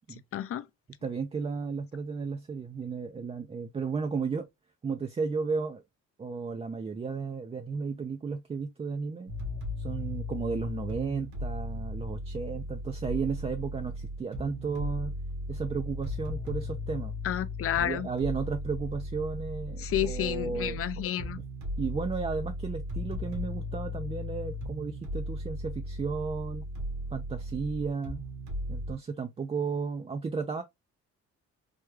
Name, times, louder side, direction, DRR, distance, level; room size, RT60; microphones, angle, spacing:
voice 1, 0.3-0.6 17.2-18.1 19.8-21.4, left 11 dB, 50° left, 0.5 m, -30 dB
voice 2, 1.0-4.5 4.8-5.8 6.2-9.3 9.8-15.1 15.5-17.2 17.8-20.8 21.8-26.6 27.1-28.2 28.7-30.6, right 5 dB, 20° right, 0.3 m, -34 dB
sound 1, 9.3-28.9, left 1 dB, 75° right, 1.4 m, -36 dB
3.4 x 2.2 x 3.0 m
cardioid pair, 90°, 30 cm